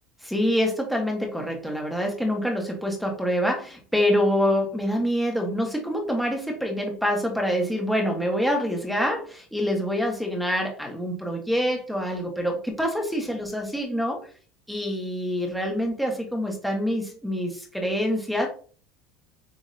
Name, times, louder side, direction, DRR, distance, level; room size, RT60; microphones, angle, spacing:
voice 1, 0.2-14.2 14.7-18.5, equal, ahead, 0 dB, 1.1 m, -26 dB
7.3 x 2.6 x 2.6 m, 0.41 s
cardioid pair, 155°, 0 cm